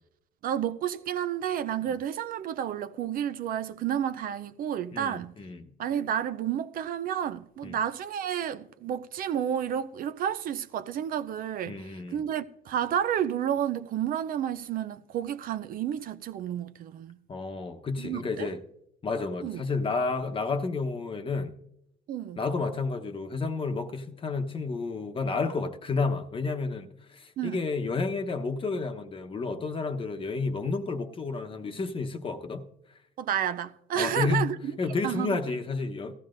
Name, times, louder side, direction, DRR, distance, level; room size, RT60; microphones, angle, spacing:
voice 1, 0.4-5.3 5.8-17.2 18.0-18.5 19.4-19.6 22.1-22.4 27.4-27.6 33.2-34.7 35.0-35.4, right 9 dB, 55° right, 0.5 m, -31 dB
voice 2, 4.9-5.7 7.6-7.8 11.7-12.2 17.3-18.6 19.0-21.5 22.4-32.6 34.0-34.5 34.8-36.1, left 4 dB, 30° left, 1.0 m, -31 dB
17.5 x 14.5 x 2.6 m
cardioid pair, 110°, 17 cm